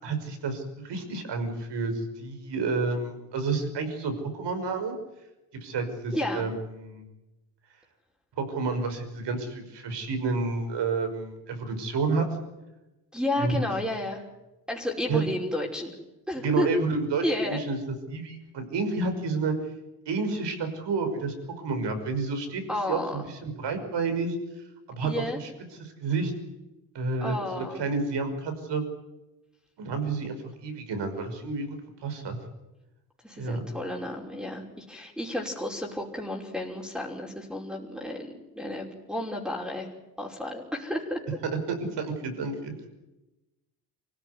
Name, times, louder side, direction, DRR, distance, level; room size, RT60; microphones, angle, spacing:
voice 1, 0.0-4.9 5.6-7.1 8.4-12.3 13.4-13.5 15.1-15.2 16.4-17.8 18.1-19.5 20.1-21.3 21.6-24.3 24.9-25.1 25.4-25.5 25.8-26.3 26.9-28.8 29.8-30.4 30.6-32.4 33.4-33.6 42.0-42.9, right 4 dB, 60° right, 7 dB, 5.8 m, -30 dB
voice 2, 6.1-6.4 13.1-14.2 14.7-15.9 16.3-16.7 17.2-17.6 22.7-23.2 25.0-25.4 27.2-27.8 33.2-38.3 38.5-39.9 40.2-41.2, left 1 dB, ahead, -3 dB, 5.5 m, -31 dB
25.0 x 16.0 x 9.7 m, 1.0 s
hypercardioid pair, 55°, 46 cm